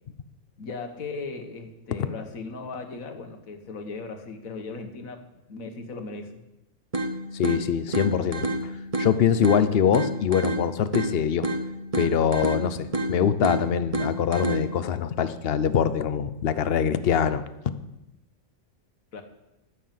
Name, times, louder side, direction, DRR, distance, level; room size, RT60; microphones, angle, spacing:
voice 1, 0.6-6.4 19.1-19.2, left 4 dB, 70° left, 6 dB, 1.7 m, -37 dB
sound 1, 6.9-14.9, right 1 dB, 30° right, 1.0 m, -30 dB
voice 2, 7.3-8.7 9.0-11.5 12.0-17.4, left 8 dB, 55° left, 13 dB, 0.8 m, -24 dB
14.5 x 6.5 x 7.5 m, 0.96 s
omnidirectional pair, 1.5 m